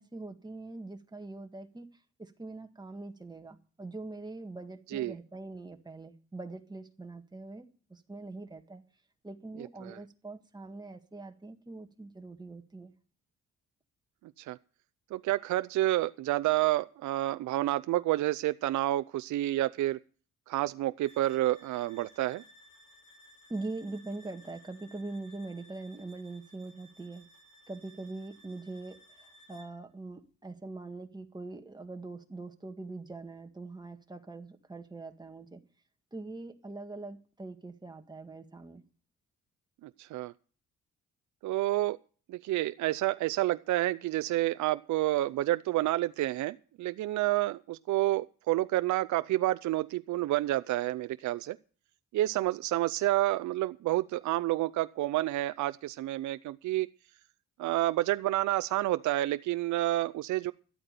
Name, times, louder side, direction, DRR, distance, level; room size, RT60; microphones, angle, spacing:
voice 1, 0.0-8.8 9.2-12.9 23.5-27.3 27.7-35.6 36.1-38.8, right 2 dB, 15° right, 5 dB, 1.8 m, -43 dB
voice 2, 9.6-10.0 14.5-14.6 15.1-20.0 20.5-22.4 40.0-40.3 41.4-42.0 42.3-51.6 52.1-56.9 57.6-60.5, right 15 dB, 70° right, 11 dB, 0.6 m, -29 dB
sound 1, 21.0-29.8, equal, 85° left, 5.2 m, -58 dB
13.0 x 8.6 x 6.7 m, 0.40 s
cardioid pair, 90°, 30 cm